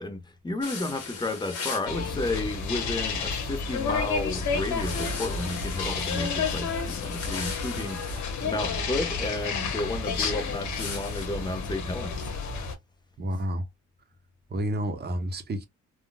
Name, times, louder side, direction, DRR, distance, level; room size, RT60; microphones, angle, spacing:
voice 1, 0.0-12.3, left 2 dB, 15° left, 0.9 m, -32 dB
sound 1, 0.6-1.9 4.7-8.7 10.7-11.3, left 5 dB, 55° left, 1.4 m, -39 dB
sound 2, 1.9-12.7, left 4 dB, 70° left, 1.1 m, -31 dB
voice 2, 13.2-13.6 14.5-15.7, equal, 35° right, 0.9 m, -30 dB
3.6 x 2.4 x 2.3 m
cardioid pair, 90°, 30 cm